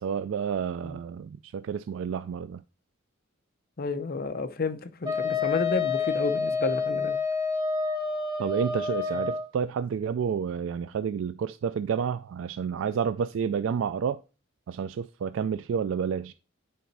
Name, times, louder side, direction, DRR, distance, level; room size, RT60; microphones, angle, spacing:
voice 1, 0.0-2.6 8.4-14.2 14.7-16.3, right 7 dB, 70° right, 0.3 m, -30 dB
voice 2, 3.8-7.2, left 3 dB, 50° left, 0.7 m, -31 dB
Wind instrument woodwind instrument, 5.0-9.5, left 4 dB, 20° right, 1.7 m, -28 dB
9.4 x 4.1 x 4.6 m
head